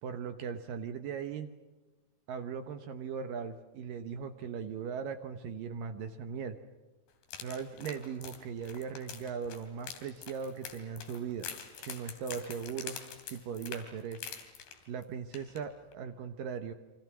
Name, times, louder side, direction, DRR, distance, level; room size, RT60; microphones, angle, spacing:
voice 1, 0.0-1.5 2.3-6.6 7.4-11.5 11.8-13.0 13.3-14.3 14.9-16.7, right 6 dB, 75° right, 7 dB, 2.0 m, -39 dB
sound 1, 7.2-15.0 15.3-15.6 15.9-16.0, left 7 dB, 70° left, 4.7 m, -45 dB
29.5 x 25.0 x 6.1 m, 1.2 s
omnidirectional pair, 5.3 m